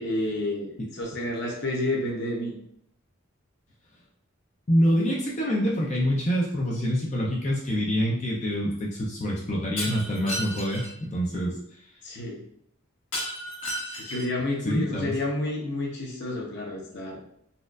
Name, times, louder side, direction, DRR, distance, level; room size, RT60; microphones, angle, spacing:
voice 1, 0.0-2.5 12.0-12.4 14.0-17.2, left 1 dB, 50° left, -1 dB, 0.8 m, -30 dB
voice 2, 4.7-11.6 14.6-15.1, equal, 35° left, -3 dB, 0.5 m, -26 dB
Shatter, 9.8-10.9 13.1-14.4, equal, 75° left, 1.4 m, -33 dB
4.1 x 2.4 x 2.4 m, 0.70 s
head